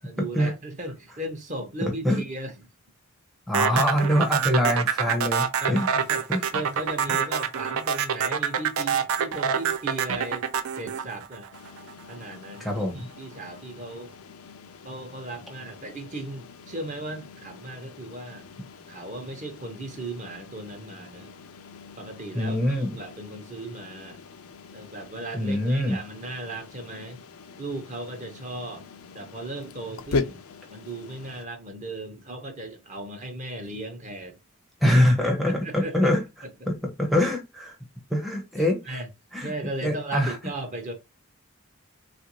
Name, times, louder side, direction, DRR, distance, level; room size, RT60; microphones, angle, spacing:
voice 1, 0.0-2.5 5.6-10.5 10.7-11.5 12.1-14.1 14.8-18.5 18.9-21.3 22.0-24.2 24.7-27.2 27.6-28.8 29.1-30.4 30.7-34.4 35.4-36.1 38.6-39.1 39.4-40.9, right 2 dB, 35° right, 0.8 m, -36 dB
voice 2, 3.5-5.9 6.3-6.4 7.1-7.2 12.6-13.1 22.3-23.0 25.3-26.0 34.8-36.2 36.7-37.7 38.1-39.0 39.3-39.5 39.8-40.4, equal, ahead, 0.6 m, -24 dB
sound 1, 3.5-11.9, right 7 dB, 70° right, 0.5 m, -26 dB
sound 2, 11.5-31.5, left 4 dB, 75° left, 0.5 m, -40 dB
3.3 x 2.5 x 2.9 m
head